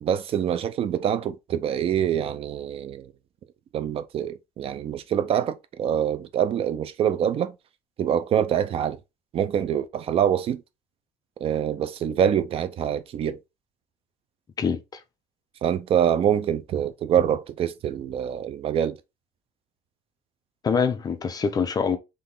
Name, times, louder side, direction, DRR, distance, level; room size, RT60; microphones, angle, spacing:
voice 1, 0.0-3.1 3.7-7.5 8.0-9.0 9.3-10.6 11.4-13.4 15.6-19.0, right 9 dB, 50° right, 0.7 m, -25 dB
voice 2, 14.6-15.0 20.6-22.0, left 6 dB, 30° left, 0.7 m, -25 dB
3.8 x 3.4 x 3.8 m
cardioid pair, 115°, 13 cm